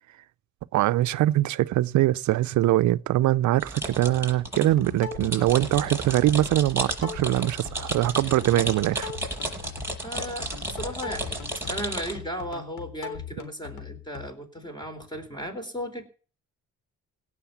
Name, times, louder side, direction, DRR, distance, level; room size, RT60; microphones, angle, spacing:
voice 1, 0.7-9.1, right 15 dB, 70° right, 0.5 m, -23 dB
sound 1, 3.6-12.1, right 1 dB, 10° right, 6.7 m, -33 dB
sound 2, 4.6-14.3, left 8 dB, 85° left, 3.5 m, -40 dB
voice 2, 10.0-11.4 11.7-16.0, equal, 15° left, 3.9 m, -35 dB
17.5 x 6.5 x 7.1 m
cardioid pair, 90°, 30 cm